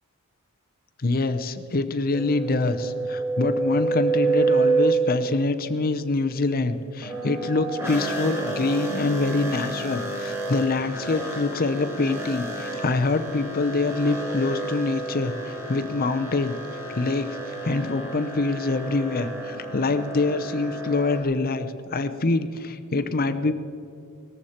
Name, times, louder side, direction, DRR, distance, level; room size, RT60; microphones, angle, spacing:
voice 1, 1.0-16.5 16.9-23.6, left 3 dB, 40° left, 10 dB, 0.7 m, -25 dB
sound 1, 2.1-5.4 7.0-21.2, right 3 dB, 10° right, 2.6 m, -29 dB
19.0 x 14.0 x 4.3 m, 2.7 s
head